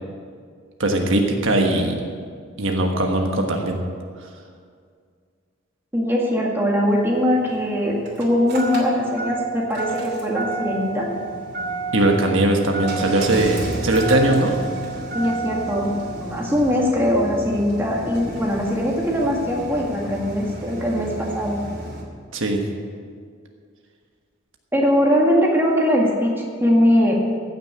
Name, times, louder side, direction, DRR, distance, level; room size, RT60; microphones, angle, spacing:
voice 1, 0.8-2.0 2.6-3.8 11.9-14.5 22.3-22.6, right 1 dB, 70° right, 2 dB, 1.4 m, -20 dB
voice 2, 5.9-11.1 15.1-21.6 24.7-27.1, equal, 10° right, -2 dB, 1.9 m, -21 dB
Engine starting, 6.9-22.0, right 3 dB, 50° right, 2.6 m, -31 dB
15.0 x 6.7 x 8.3 m, 2.1 s
head